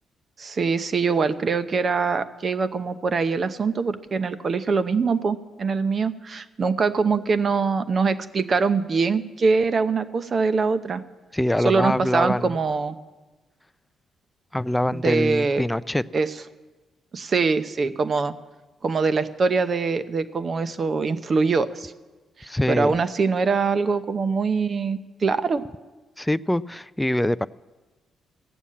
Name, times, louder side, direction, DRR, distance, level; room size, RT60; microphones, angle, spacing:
voice 1, 0.4-11.0 11.6-13.0 14.9-15.6 16.1-16.3 17.1-18.3 18.8-21.9 22.4-25.6, right 4 dB, 40° right, 12 dB, 0.7 m, -23 dB
voice 2, 11.3-12.6 14.5-16.0 22.4-22.9 26.2-27.5, left 1 dB, 5° left, 15 dB, 0.3 m, -24 dB
15.5 x 7.1 x 8.5 m, 1.2 s
cardioid pair, 95°, 0 cm